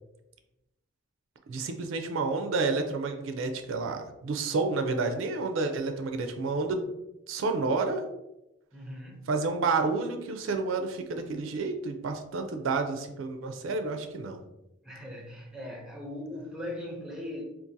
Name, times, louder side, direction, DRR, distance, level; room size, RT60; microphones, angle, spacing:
voice 1, 1.5-6.9 7.3-8.0 9.3-14.4, right 3 dB, 80° right, 6 dB, 0.4 m, -30 dB
voice 2, 8.7-9.3 14.8-17.4, left 1 dB, 5° right, 0 dB, 0.6 m, -39 dB
3.8 x 2.4 x 2.6 m, 0.93 s
head